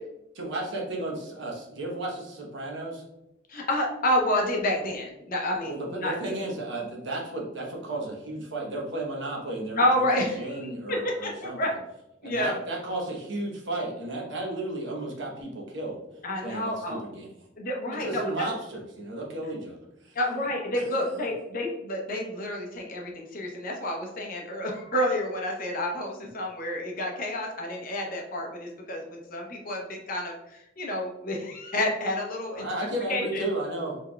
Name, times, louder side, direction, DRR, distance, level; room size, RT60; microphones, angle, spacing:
voice 1, 0.3-3.0 5.6-11.6 12.2-16.0 16.4-17.3 18.0-19.8 20.0-20.2 32.5-34.0, right 2 dB, 65° right, -1 dB, 1.0 m, -33 dB
voice 2, 3.5-6.3 9.8-11.7 12.2-12.6 16.2-17.0 17.6-18.5 20.1-32.7 33.1-33.4, left 1 dB, 45° left, 0 dB, 0.7 m, -29 dB
4.1 x 3.3 x 2.2 m, 0.88 s
head